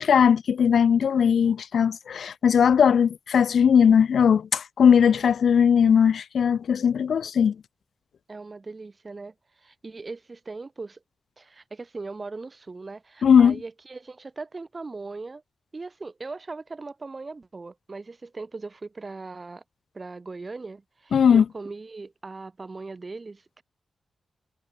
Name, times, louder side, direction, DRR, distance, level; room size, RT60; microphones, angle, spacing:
voice 1, 0.0-7.6 13.2-13.6 21.1-21.4, left 7 dB, 75° left, 0.4 m, -19 dB
voice 2, 8.3-11.0 11.4-15.4 15.7-19.6 19.9-23.6, right 3 dB, 30° right, 5.5 m, -39 dB
wide cardioid pair, 150°, 0 cm